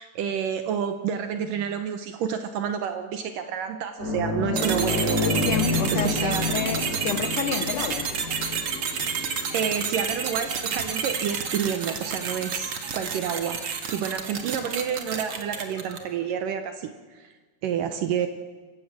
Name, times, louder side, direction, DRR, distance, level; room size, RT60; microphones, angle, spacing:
voice 1, 0.0-5.3 5.9-6.5 9.1-9.3 9.5-13.6 13.9-16.9 17.2-17.3 17.6-18.3, right 8 dB, 70° right, 8 dB, 2.1 m, -29 dB
sound 1, 4.0-12.9 13.3-13.4 15.5-15.6, left 1 dB, 20° left, 7.3 m, -30 dB
sound 2, 4.6-16.1, right 6 dB, 50° right, 1.8 m, -30 dB
voice 2, 5.2-8.1, left 8 dB, 85° left, 10 dB, 1.7 m, -30 dB
28.0 x 16.0 x 7.4 m, 1.4 s
omnidirectional pair, 4.8 m